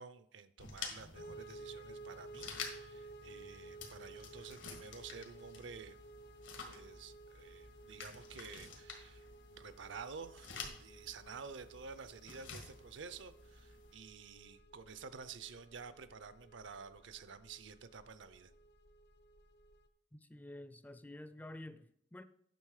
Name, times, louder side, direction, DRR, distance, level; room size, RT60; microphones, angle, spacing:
voice 1, 0.0-6.0 6.7-18.5, right 5 dB, 75° right, 0.6 m, -51 dB
sound 1, 0.6-13.9, left 5 dB, 90° left, 1.8 m, -51 dB
sound 2, 1.1-19.9, right 2 dB, 60° left, 0.7 m, -55 dB
voice 2, 20.1-22.2, left 1 dB, 10° left, 0.4 m, -50 dB
9.2 x 6.2 x 4.9 m
head